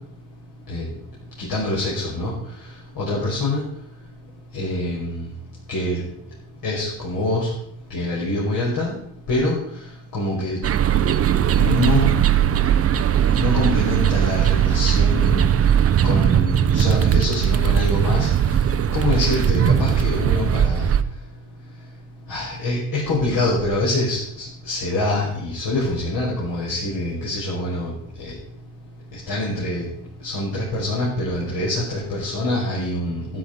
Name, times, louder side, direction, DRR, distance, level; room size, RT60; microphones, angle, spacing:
voice 1, 1.4-2.3 3.0-3.6 4.5-5.3 5.7-6.0 6.6-7.5 7.9-8.9 9.3-9.6 10.1-10.6 11.6-12.1 13.4-15.6 16.0-18.3 18.9-20.9 22.3-27.9 28.2-28.3 29.1-29.8 30.2-33.4, left 1 dB, 55° left, -6 dB, 5.9 m, -25 dB
sound 1, 10.6-21.0, right 9 dB, 35° right, 0.8 m, -19 dB
12.5 x 11.5 x 5.5 m, 0.71 s
cardioid pair, 125°, 41 cm